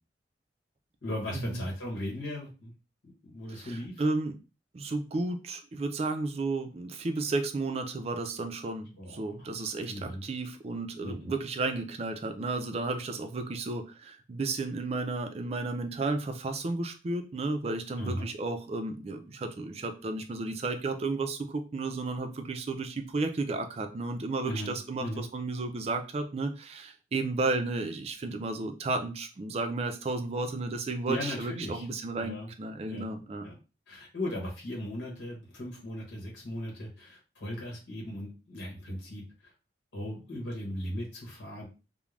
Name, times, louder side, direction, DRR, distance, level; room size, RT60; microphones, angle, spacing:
voice 1, 1.0-2.7 3.0-3.9 9.0-9.5 9.9-10.2 11.0-11.3 18.0-18.3 24.4-25.2 31.0-31.9 32.2-32.5 32.8-33.2 33.4-33.5 33.9-39.5 39.9-41.7, left 1 dB, 90° left, -2 dB, 1.0 m, -37 dB
voice 2, 3.5-4.4 4.7-33.5, right 3 dB, 35° right, 7 dB, 0.3 m, -33 dB
2.4 x 2.1 x 3.2 m, 0.32 s
head